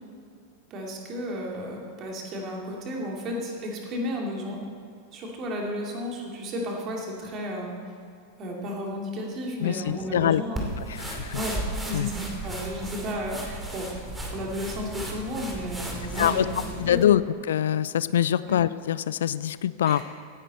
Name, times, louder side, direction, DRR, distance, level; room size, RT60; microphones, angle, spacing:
voice 1, 0.7-4.6 5.1-7.7 8.4-10.7 11.3-13.9 14.3-17.2 18.4-18.6 19.8-20.0, equal, 35° right, 0 dB, 2.7 m, -33 dB
voice 2, 9.6-10.4 10.9-11.4 11.9-12.1 16.2-16.5 16.8-17.2 17.5-20.0, left 10 dB, 60° left, 16 dB, 0.4 m, -24 dB
sound 1, 10.6-17.1, right 1 dB, 10° right, 2.5 m, -35 dB
17.0 x 10.5 x 4.3 m, 2.4 s
figure-of-eight pair, 90°, 0 cm